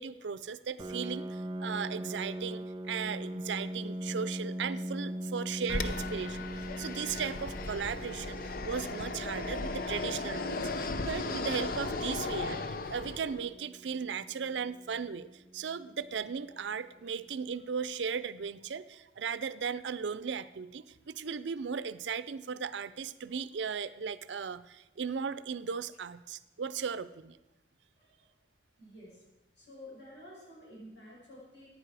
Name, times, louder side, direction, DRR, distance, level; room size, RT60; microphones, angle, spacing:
voice 1, 0.0-27.4, right 6 dB, 85° right, 16 dB, 0.5 m, -37 dB
Piano, 0.8-16.2, equal, 25° right, 0.4 m, -41 dB
Fixed-wing aircraft airplane, 5.7-13.5, left 3 dB, 50° left, 0.6 m, -36 dB
voice 2, 28.8-29.2 29.6-31.7, left 1 dB, 85° left, -6 dB, 5.5 m, -51 dB
15.0 x 9.4 x 4.8 m, 1.0 s
head